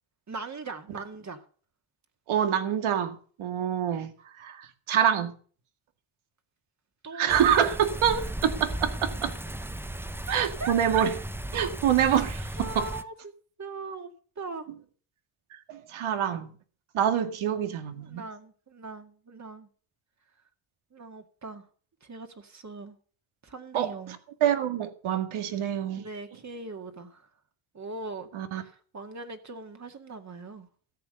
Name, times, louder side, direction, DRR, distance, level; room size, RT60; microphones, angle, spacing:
voice 1, 0.3-1.4 7.0-7.5 10.3-10.7 12.6-13.3 13.6-14.7 18.0-19.7 20.9-21.7 22.0-23.0 23.4-24.2 26.0-27.3 27.7-30.7, right 3 dB, 35° right, 2.1 m, -40 dB
voice 2, 2.3-5.3 7.1-9.4 10.3-11.1 11.5-12.9 15.7-16.5 16.9-18.2 23.7-23.9 24.4-26.1 28.3-28.6, right 9 dB, 80° right, 2.0 m, -26 dB
sound 1, 7.3-13.0, right 1 dB, 5° right, 0.7 m, -36 dB
13.5 x 8.2 x 6.6 m
cardioid pair, 95°, 49 cm